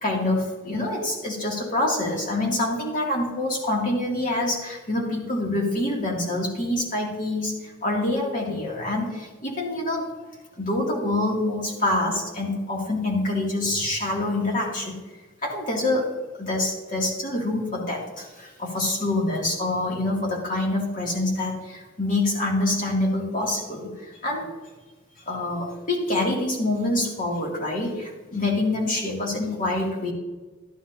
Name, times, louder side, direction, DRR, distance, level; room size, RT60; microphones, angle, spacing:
voice 1, 0.0-10.1 10.6-15.0 15.4-16.1 16.4-24.5 25.3-30.1, left 2 dB, 40° left, -2 dB, 2.3 m, -26 dB
12.5 x 9.9 x 2.7 m, 1.3 s
head